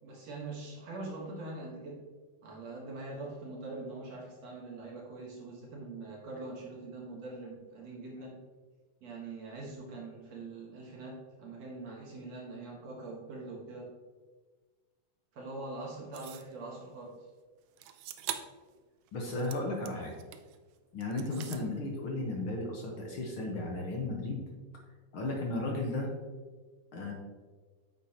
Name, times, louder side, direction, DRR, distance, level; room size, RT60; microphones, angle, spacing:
voice 1, 0.0-2.0 2.4-8.4 9.0-13.9 15.3-17.1, right 2 dB, 60° right, -3 dB, 2.5 m, -43 dB
sound 1, 16.1-16.5 17.8-18.6 19.1-20.6 21.0-21.7, right 11 dB, 85° right, 1.4 m, -43 dB
voice 2, 19.1-20.1 20.9-24.4 25.1-26.1 26.9-27.1, left 2 dB, 60° left, 0 dB, 1.6 m, -34 dB
9.2 x 7.8 x 2.9 m, 1.4 s
omnidirectional pair, 3.5 m